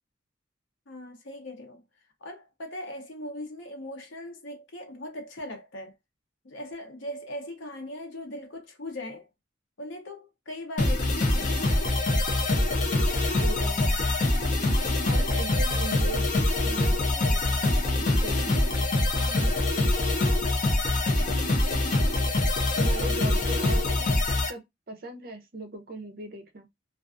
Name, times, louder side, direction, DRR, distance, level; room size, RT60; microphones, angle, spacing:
voice 1, 0.9-1.8 2.2-6.0 6.4-9.3 9.8-11.5 19.1-19.6, left 1 dB, 80° left, 0.7 m, -39 dB
sound 1, 10.8-24.5, left 2 dB, 40° left, 0.5 m, -24 dB
voice 2, 13.4-14.0 15.0-18.6 22.7-24.1 24.5-26.7, right 2 dB, 50° right, 0.6 m, -39 dB
2.4 x 2.3 x 2.4 m
head